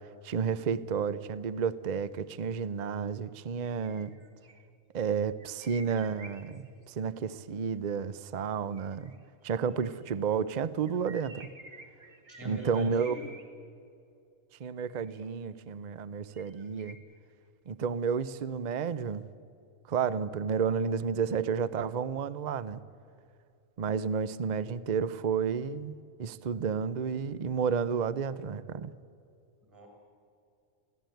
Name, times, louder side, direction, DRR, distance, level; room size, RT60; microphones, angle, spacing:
voice 1, 0.2-4.1 4.9-9.1 9.4-11.5 12.4-13.1 14.6-17.0 17.7-19.3 19.9-22.8 23.8-28.9, right 6 dB, 45° right, 0.6 m, -31 dB
sound 1, 3.6-4.7 5.4-6.8 8.7-10.1 10.9-13.4 14.9-15.4 16.3-16.9, right 2 dB, 70° right, 2.2 m, -52 dB
voice 2, 12.3-13.3 29.6-29.9, equal, 15° right, 6.5 m, -43 dB
23.5 x 16.0 x 9.2 m
omnidirectional pair, 1.4 m